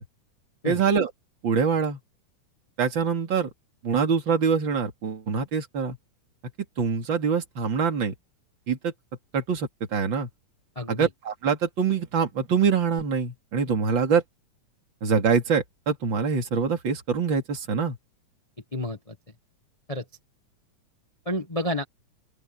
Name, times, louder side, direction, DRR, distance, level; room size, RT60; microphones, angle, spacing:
voice 1, 0.6-1.1 1.4-2.0 2.8-3.5 3.8-6.0 6.8-8.1 8.7-8.9 9.3-10.3 10.9-14.2 15.0-18.0, right 6 dB, 40° right, 3.1 m, -24 dB
voice 2, 10.7-11.1 18.7-19.1 19.9-20.0 21.2-21.8, left 1 dB, 25° left, 0.8 m, -29 dB
open air
omnidirectional pair, 3.6 m